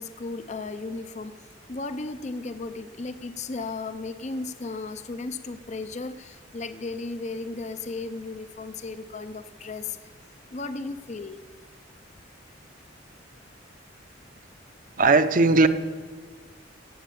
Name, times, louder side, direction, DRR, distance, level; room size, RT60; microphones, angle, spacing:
voice 1, 0.0-1.3 1.7-10.0 10.5-11.4, left 3 dB, 40° left, 11 dB, 0.6 m, -35 dB
voice 2, 15.0-15.7, right 3 dB, 45° right, 11 dB, 0.8 m, -18 dB
17.5 x 7.4 x 8.6 m, 1.5 s
head